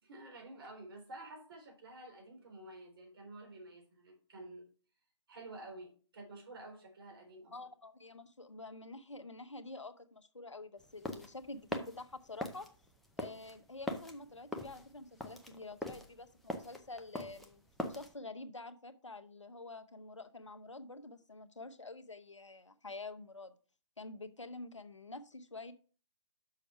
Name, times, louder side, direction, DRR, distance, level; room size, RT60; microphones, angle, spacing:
voice 1, 0.0-4.6 5.3-7.5, right 2 dB, 50° right, 2 dB, 3.9 m, -50 dB
voice 2, 7.5-12.7 13.2-17.6 17.9-23.5 24.0-25.7, left 2 dB, 80° left, 9 dB, 1.0 m, -48 dB
sound 1, 10.8-18.1, left 1 dB, ahead, 0.6 m, -42 dB
6.6 x 6.2 x 5.7 m, 0.39 s
figure-of-eight pair, 130°, 15 cm